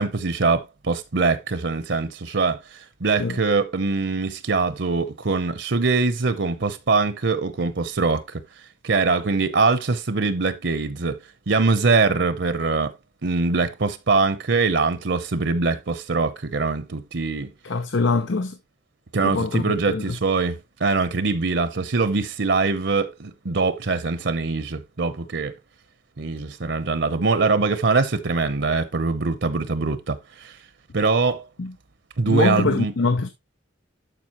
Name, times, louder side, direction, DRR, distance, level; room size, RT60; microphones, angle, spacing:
voice 1, 0.0-12.9 13.2-17.5 19.1-25.5 26.2-30.6 30.9-31.4 32.2-32.9, right 4 dB, 70° right, 0.8 m, -23 dB
voice 2, 17.6-18.6 19.2-20.0 31.6-31.7 32.2-33.3, left 3 dB, 85° left, 0.8 m, -23 dB
12.0 x 5.1 x 3.0 m
head